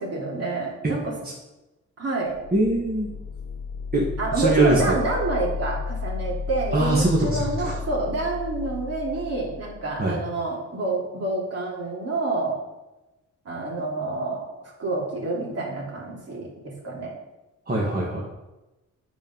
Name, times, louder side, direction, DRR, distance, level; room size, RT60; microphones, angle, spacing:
voice 1, 0.0-1.1 2.0-2.3 4.2-12.6 13.4-14.5 14.8-17.1, right 3 dB, 50° right, -3 dB, 3.1 m, -28 dB
sound 1, 2.2-10.0, left 5 dB, 75° left, 1.1 m, -33 dB
voice 2, 2.5-3.1 3.9-4.1 4.3-4.8 6.7-7.7 10.0-10.2 17.7-18.2, right 1 dB, 30° right, -4 dB, 1.9 m, -22 dB
8.9 x 5.4 x 5.5 m, 1.0 s
cardioid pair, 90°, 31 cm